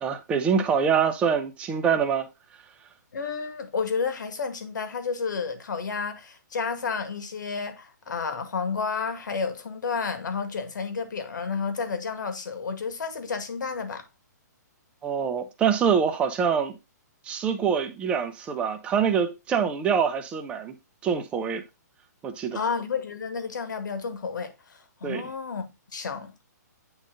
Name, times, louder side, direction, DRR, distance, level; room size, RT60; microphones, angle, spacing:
voice 1, 0.0-2.3 15.0-16.8 17.2-20.8 21.0-21.6 22.2-22.6 25.0-25.2, right 7 dB, 10° right, 0.7 m, -25 dB
voice 2, 3.1-14.0 22.5-26.4, left 5 dB, 85° left, 1.8 m, -31 dB
8.9 x 3.6 x 3.8 m
hypercardioid pair, 165°, 10 cm